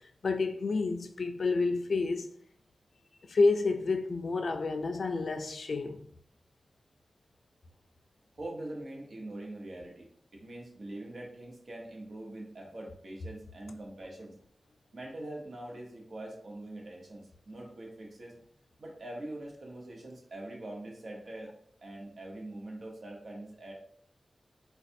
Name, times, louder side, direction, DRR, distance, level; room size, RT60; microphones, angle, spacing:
voice 1, 0.2-2.3 3.3-6.0, left 3 dB, 75° left, 0.4 m, -29 dB
voice 2, 8.4-14.3 14.9-18.3 18.8-21.5 21.8-23.7, right 1 dB, 70° right, 0.9 m, -43 dB
4.0 x 2.3 x 2.6 m
cardioid pair, 40°, 0 cm